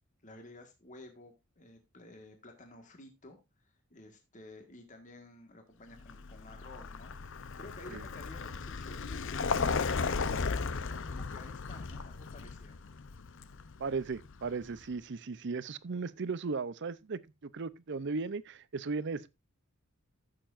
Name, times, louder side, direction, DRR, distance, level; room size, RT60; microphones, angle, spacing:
voice 1, 0.2-7.1 7.6-12.8, left 2 dB, 35° left, 1.7 m, -52 dB
Vehicle, 6.0-14.8, left 4 dB, 60° left, 0.7 m, -36 dB
voice 2, 13.8-19.3, right 4 dB, 55° right, 0.6 m, -36 dB
15.0 x 6.8 x 2.5 m
head